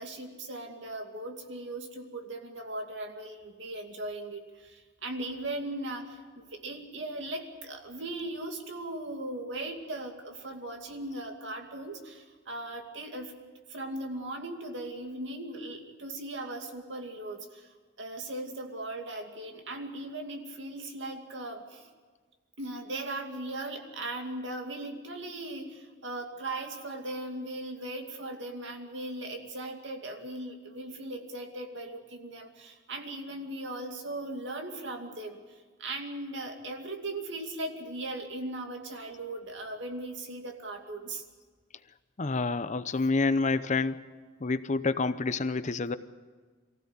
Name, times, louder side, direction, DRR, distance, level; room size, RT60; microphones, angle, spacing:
voice 1, 0.0-13.3 13.7-21.9 22.6-41.2, right 2 dB, 65° right, 4 dB, 2.5 m, -38 dB
voice 2, 42.2-44.0 44.4-46.0, left 3 dB, 40° left, 13 dB, 0.7 m, -28 dB
23.5 x 15.5 x 8.4 m, 1.4 s
head